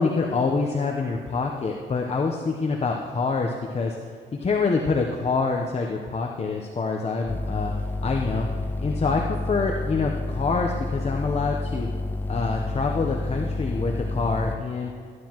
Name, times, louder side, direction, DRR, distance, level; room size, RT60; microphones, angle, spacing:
voice 1, 0.0-4.0 4.4-7.7 8.0-8.5 8.8-11.9 12.3-14.9, left 4 dB, 30° left, 1 dB, 0.8 m, -26 dB
sound 1, 7.3-14.6, left 2 dB, 10° left, 0.4 m, -29 dB
14.0 x 9.4 x 3.0 m, 2.1 s
cardioid pair, 90°, 20 cm